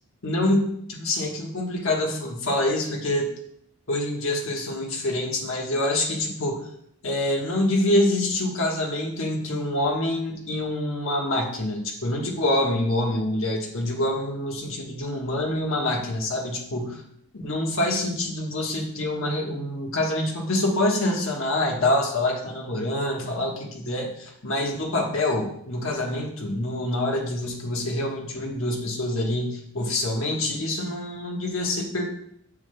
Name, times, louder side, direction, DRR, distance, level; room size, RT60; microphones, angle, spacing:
voice 1, 0.2-3.3 3.9-6.7 7.0-17.0 17.3-32.0, left 1 dB, 60° left, 0 dB, 1.3 m, -26 dB
7.1 x 7.0 x 2.3 m, 0.69 s
head